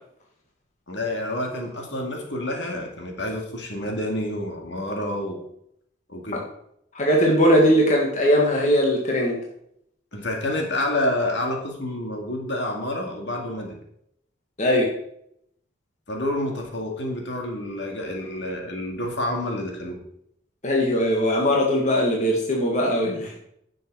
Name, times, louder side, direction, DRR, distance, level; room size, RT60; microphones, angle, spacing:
voice 1, 0.9-5.4 6.1-6.4 10.1-13.8 16.1-20.0, left 1 dB, 65° left, 1 dB, 2.1 m, -28 dB
voice 2, 6.9-9.4 14.6-14.9 20.6-23.3, equal, 40° left, -1 dB, 1.7 m, -20 dB
10.5 x 6.5 x 4.6 m, 0.73 s
head